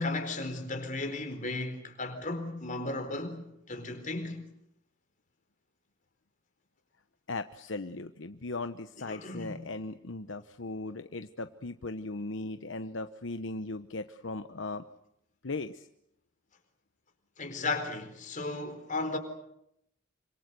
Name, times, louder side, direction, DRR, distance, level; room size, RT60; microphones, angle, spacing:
voice 1, 0.0-4.5 9.0-9.7 17.4-19.2, left 2 dB, 40° left, 4.2 m, -35 dB
voice 2, 7.3-14.8 15.4-15.9, left 2 dB, 65° left, 1.0 m, -38 dB
27.5 x 25.5 x 6.9 m
head